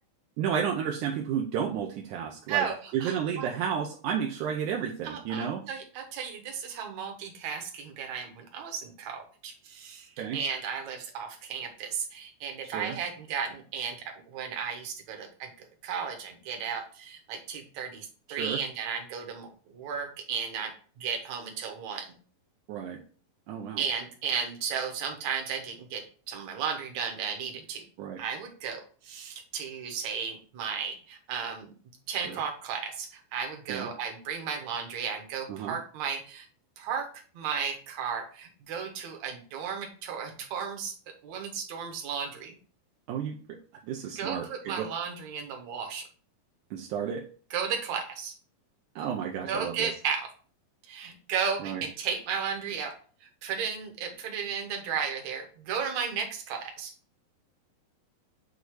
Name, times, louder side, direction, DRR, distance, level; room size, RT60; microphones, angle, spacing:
voice 1, 0.4-2.7 2.9-5.6 10.2-10.4 12.6-13.0 18.3-18.6 22.7-23.0 23.5-23.8 28.0-28.2 32.2-32.4 33.7-33.9 35.5-35.8 43.1-44.9 46.7-47.3 49.0-49.9 51.6-51.8, right 8 dB, 75° right, 1 dB, 1.8 m, -32 dB
voice 2, 2.5-3.4 5.0-14.0 14.3-15.5 15.8-22.1 23.8-27.8 28.2-31.7 32.1-36.5 36.8-37.1 37.3-40.9 41.2-42.6 44.2-46.0 47.5-48.4 49.5-50.3 50.9-52.9 53.2-56.9, right 6 dB, 60° right, 3 dB, 2.1 m, -34 dB
8.0 x 2.7 x 4.6 m, 0.41 s
omnidirectional pair, 4.1 m